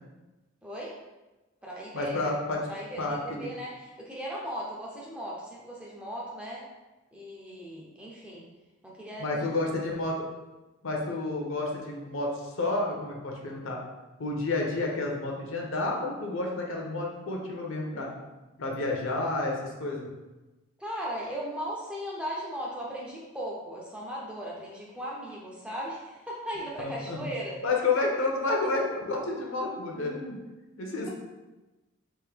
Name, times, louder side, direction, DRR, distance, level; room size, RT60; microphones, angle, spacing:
voice 1, 0.6-1.0 1.6-2.3 2.7-6.6 7.1-8.5 8.8-9.8 20.8-27.6, equal, 5° right, -4 dB, 0.4 m, -37 dB
voice 2, 1.9-2.6 3.0-3.5 9.2-10.2 10.8-13.8 14.2-18.1 18.6-20.1 26.8-27.3 27.6-30.4 30.8-31.1, left 2 dB, 65° left, 0 dB, 0.7 m, -30 dB
3.5 x 2.6 x 3.3 m, 1.1 s
head